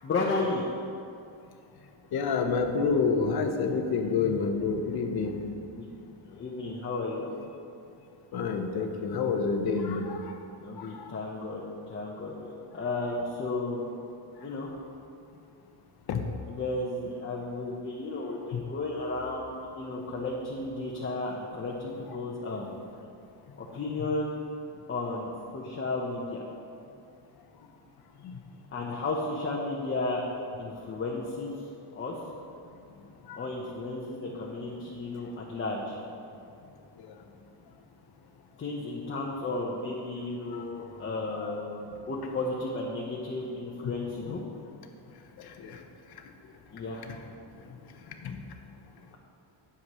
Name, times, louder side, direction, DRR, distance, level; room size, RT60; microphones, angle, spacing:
voice 1, 0.0-0.7 5.7-5.9 6.3-7.3 10.6-13.8 14.4-14.7 16.5-22.7 23.7-24.4 24.9-26.4 28.7-30.2 30.6-31.6 31.9-32.1 33.4-36.0 38.6-44.4 46.7-47.0, left 2 dB, 25° left, -3 dB, 1.0 m, -33 dB
voice 2, 2.1-5.3 8.3-10.0 16.1-16.2 18.5-18.6 41.4-41.5 44.3-44.4 48.2-48.3, left 5 dB, 55° left, 5 dB, 1.1 m, -27 dB
20.0 x 7.2 x 3.1 m, 2.5 s
cardioid pair, 170°, 45 cm